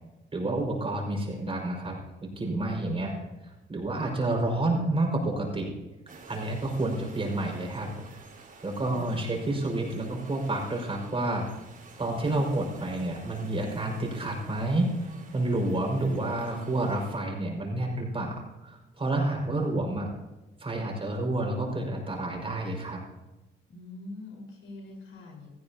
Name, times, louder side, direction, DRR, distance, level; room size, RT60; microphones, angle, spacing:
voice 1, 0.3-3.1 3.7-5.7 6.3-7.9 8.6-11.5 12.0-20.1 20.6-23.0, right 2 dB, 30° right, 0 dB, 5.3 m, -29 dB
sound 1, 6.1-17.2, right 4 dB, 45° right, 4.4 m, -50 dB
voice 2, 8.9-9.4 23.7-25.5, left 2 dB, 80° left, 1 dB, 4.5 m, -44 dB
18.0 x 15.0 x 2.8 m, 1.1 s
cardioid pair, 90°, 20 cm